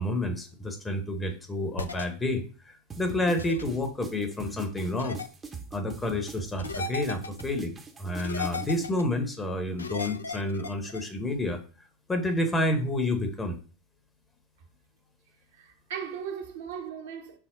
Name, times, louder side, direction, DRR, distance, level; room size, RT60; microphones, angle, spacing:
voice 1, 0.0-5.2 5.7-11.6 12.1-13.5, left 1 dB, 15° left, 0.9 m, -29 dB
sound 1, 1.8-2.0 3.4-3.6 5.0-5.3 6.6-7.4 8.2-9.0 9.8-11.0, left 4 dB, 80° left, 0.3 m, -35 dB
sound 2, 2.9-8.9, right 5 dB, 20° right, 0.7 m, -43 dB
voice 2, 15.5-17.4, right 7 dB, 60° right, 0.8 m, -37 dB
5.9 x 2.0 x 3.7 m
figure-of-eight pair, 80°, 0 cm